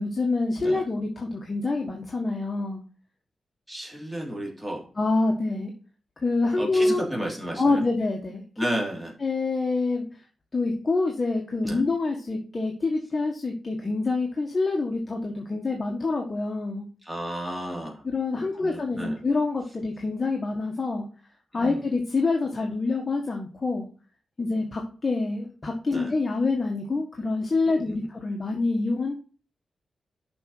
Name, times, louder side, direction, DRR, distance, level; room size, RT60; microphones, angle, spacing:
voice 1, 0.0-2.8 4.9-5.7 6.2-7.0 7.6-8.4 9.2-10.1 10.5-16.8 18.0-21.1 21.5-23.8 24.4-29.1, left 3 dB, 30° left, 0 dB, 1.6 m, -26 dB
voice 2, 3.7-4.9 6.6-7.8 8.6-9.1 11.6-11.8 17.0-18.0 18.4-19.2 21.5-21.8 25.9-26.1 27.7-28.0, right 1 dB, 5° right, -2 dB, 3.0 m, -33 dB
6.9 x 5.7 x 5.6 m, 0.37 s
wide cardioid pair, 145°, 0 cm